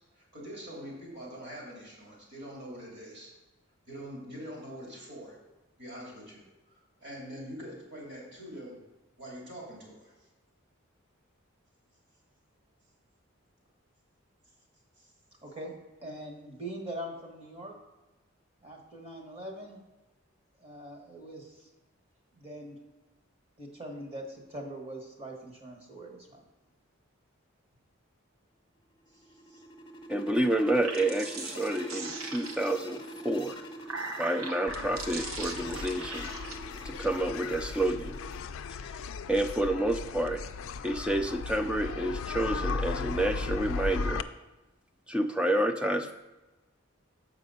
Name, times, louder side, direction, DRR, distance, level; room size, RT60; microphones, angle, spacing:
voice 1, 0.2-3.3 3.9-5.4 5.8-6.4 6.7-8.8 9.2-10.1 15.0-15.1 29.1-29.6, equal, 55° right, -4 dB, 2.9 m, -44 dB
voice 2, 15.4-15.7 16.0-17.7 18.6-19.8 20.6-21.7 22.3-22.8 23.6-26.4, right 1 dB, 30° right, 1 dB, 1.3 m, -42 dB
sound 1, 29.0-38.4, equal, 20° left, 0.7 m, -46 dB
voice 3, 30.1-33.6 34.2-36.3 36.8-38.2 39.3-40.4 40.8-44.3 45.1-46.1, right 1 dB, 5° right, 7 dB, 0.3 m, -29 dB
sound 2, 30.6-32.9 33.5-36.5, right 3 dB, 80° right, 0.9 m, -40 dB
sound 3, 34.7-44.2, left 4 dB, 75° left, 0.3 m, -36 dB
7.5 x 4.9 x 5.3 m, 1.1 s
head